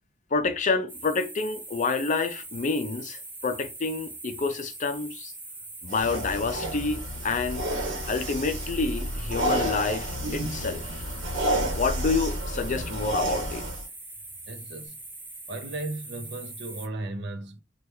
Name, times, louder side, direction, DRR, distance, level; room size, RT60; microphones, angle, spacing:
voice 1, 0.3-5.3 5.8-7.6 8.0-11.0 11.7-13.7, left 4 dB, 40° left, 0.4 m, -28 dB
sound 1, 0.9-16.9, right 2 dB, 10° right, 0.6 m, -42 dB
sound 2, 5.9-13.8, equal, 85° right, 1.1 m, -30 dB
voice 2, 14.5-15.0 15.5-17.6, right 2 dB, 65° right, 0.6 m, -35 dB
3.3 x 2.3 x 3.0 m
head